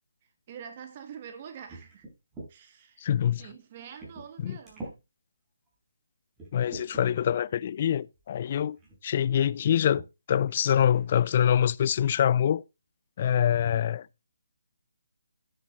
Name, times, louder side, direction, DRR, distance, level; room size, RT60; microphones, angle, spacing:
voice 1, 0.5-2.0 2.5-3.0 3.4-5.0, right 8 dB, 35° right, 1.2 m, -45 dB
sound 1, 1.7-2.5 3.3-3.4 4.0-4.3 4.6-5.0 5.7-5.8 6.4-7.1 8.2-8.3 8.8-9.0 9.9-10.1 10.5-10.6 10.9-11.3, right 2 dB, 10° right, 4.7 m, -44 dB
voice 2, 3.0-3.4 4.4-4.6 6.5-8.8 9.0-10.0 10.3-12.6 13.2-14.1, left 9 dB, 40° left, 0.4 m, -25 dB
10.0 x 7.5 x 4.1 m
figure-of-eight pair, 150°, 0 cm